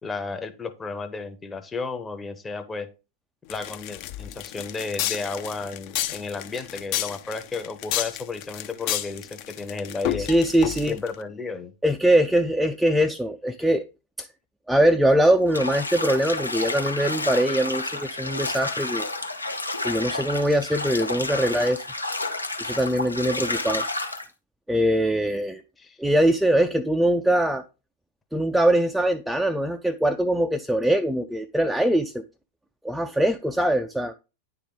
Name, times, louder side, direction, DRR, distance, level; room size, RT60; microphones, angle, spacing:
voice 1, 0.0-2.9 3.5-10.3 10.9-11.7 25.8-26.0, left 4 dB, 15° left, 0.8 m, -33 dB
sound 1, 3.5-11.2, left 13 dB, 45° left, 0.6 m, -31 dB
voice 2, 10.2-11.0 11.8-13.8 14.2-14.3 14.7-19.1 19.8-21.8 22.6-23.8 24.7-25.6 26.0-27.6 28.3-32.2 32.8-34.1, right 1 dB, 5° right, 0.4 m, -22 dB
Bathtub (filling or washing), 15.5-24.3, left 2 dB, 85° left, 0.8 m, -30 dB
9.8 x 3.4 x 3.8 m
figure-of-eight pair, 90°, 0 cm